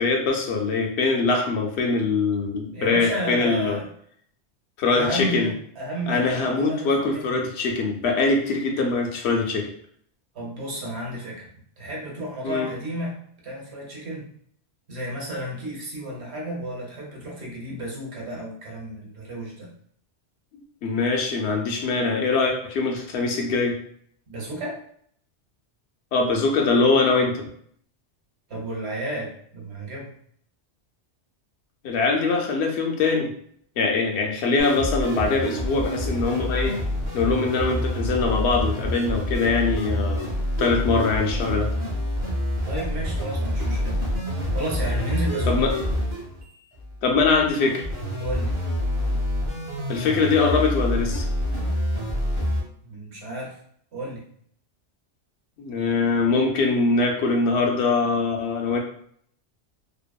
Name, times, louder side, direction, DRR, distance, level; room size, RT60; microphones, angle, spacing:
voice 1, 0.0-3.8 4.8-5.5 6.1-9.7 12.4-12.7 20.8-23.7 26.1-27.5 31.8-33.3 33.8-36.8 37.1-40.2 40.6-41.7 45.5-45.7 47.0-47.8 49.9-51.3 55.6-58.8, left 4 dB, 70° left, 1 dB, 0.8 m, -22 dB
voice 2, 2.7-3.9 4.9-7.3 10.3-11.5 11.8-13.1 13.4-14.2 14.9-19.7 24.3-24.8 28.5-30.1 42.6-44.0 44.5-45.6 48.2-48.6 52.8-53.6 53.9-54.3, equal, 70° right, -2 dB, 1.1 m, -32 dB
sound 1, 34.6-52.6, equal, 30° right, 0.7 m, -27 dB
2.7 x 2.5 x 2.2 m, 0.63 s
omnidirectional pair, 1.2 m